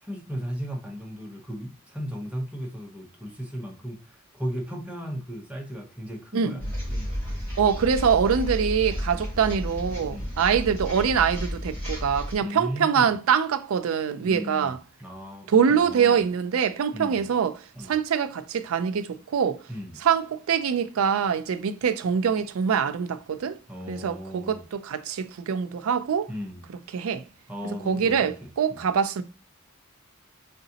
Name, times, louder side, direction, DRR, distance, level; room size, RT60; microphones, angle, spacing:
voice 1, 0.0-6.7 10.1-10.4 12.4-13.1 14.2-16.2 16.9-17.3 17.7-17.9 19.7-20.0 23.7-24.7 26.3-26.7 27.5-28.9, equal, 5° right, 0.7 m, -36 dB
sound 1, 6.6-12.4, equal, 10° left, 2.2 m, -32 dB
voice 2, 7.6-14.8 15.5-19.6 20.0-23.6 23.9-26.3 26.9-27.2 27.8-29.2, right 7 dB, 90° right, 0.4 m, -24 dB
3.9 x 3.4 x 2.8 m
head